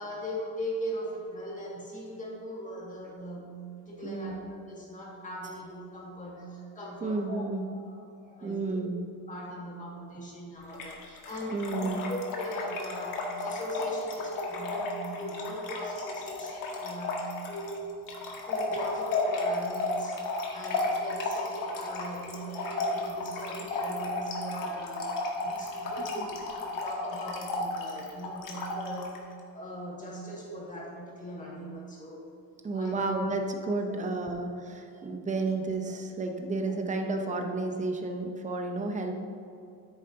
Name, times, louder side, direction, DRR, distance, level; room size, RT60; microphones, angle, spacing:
voice 1, 0.0-7.5 7.7-8.8 9.3-18.0 18.5-29.2 29.5-32.3 32.7-33.0, equal, 20° left, -4 dB, 2.2 m, -40 dB
voice 2, 4.0-4.4 7.0-7.7 8.4-9.0 11.5-12.1 26.0-26.3 32.6-39.2, right 3 dB, 20° right, 3 dB, 0.8 m, -32 dB
Trickle dribble / Fill (with liquid), 10.7-29.2, left 2 dB, 55° left, 1.6 m, -33 dB
10.0 x 9.0 x 2.9 m, 2.5 s
cardioid pair, 145°, 39 cm